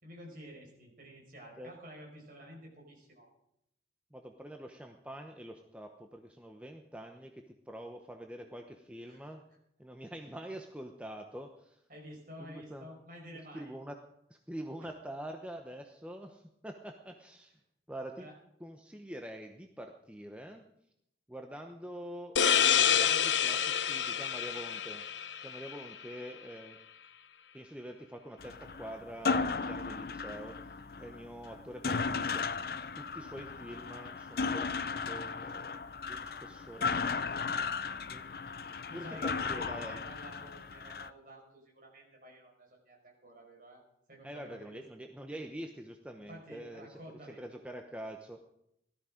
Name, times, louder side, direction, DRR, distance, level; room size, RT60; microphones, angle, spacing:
voice 1, 0.0-3.3 9.1-9.3 11.9-13.7 14.8-14.9 18.2-18.3 38.9-43.8 44.1-44.8 46.2-47.4, equal, 50° right, -1 dB, 5.6 m, -50 dB
voice 2, 4.1-7.3 7.7-9.4 9.8-11.8 12.5-12.9 13.5-14.0 14.3-17.5 17.9-18.3 18.6-20.6 21.3-25.0 25.4-26.8 27.5-32.5 32.9-35.8 36.1-37.7 38.1-38.3 38.9-40.0 44.2-47.0 47.4-48.4, right 1 dB, 5° right, 4 dB, 0.8 m, -45 dB
sound 1, 22.4-25.8, left 8 dB, 85° left, 0.8 m, -28 dB
sound 2, 28.4-41.1, left 4 dB, 55° left, 0.6 m, -36 dB
17.5 x 13.0 x 5.1 m, 0.76 s
head